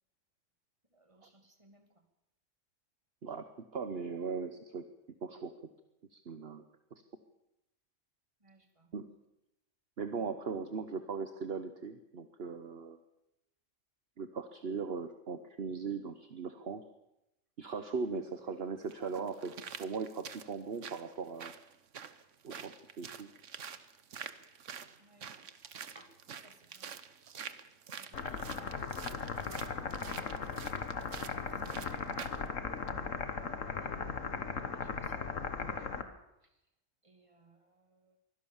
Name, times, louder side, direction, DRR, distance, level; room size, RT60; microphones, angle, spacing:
voice 1, 0.9-2.0 8.4-8.9 22.5-22.7 25.0-25.5 25.9-26.9 28.0-29.0 32.9-34.3 34.7-36.0 36.4-36.6 37.0-38.2, right 1 dB, 25° right, 5 dB, 2.7 m, -63 dB
voice 2, 3.7-4.8 5.2-5.5 6.1-6.6 8.9-9.1 10.0-13.0 14.2-16.8 17.6-19.5 19.8-21.5 22.4-23.3, right 5 dB, 55° right, 9 dB, 1.3 m, -39 dB
sound 1, 18.1-18.2 18.9-32.5 32.9-33.0, right 7 dB, 75° right, 1.4 m, -47 dB
sound 2, 28.1-36.0, left 5 dB, 85° left, 1.9 m, -37 dB
23.5 x 16.0 x 7.2 m, 0.88 s
omnidirectional pair, 1.3 m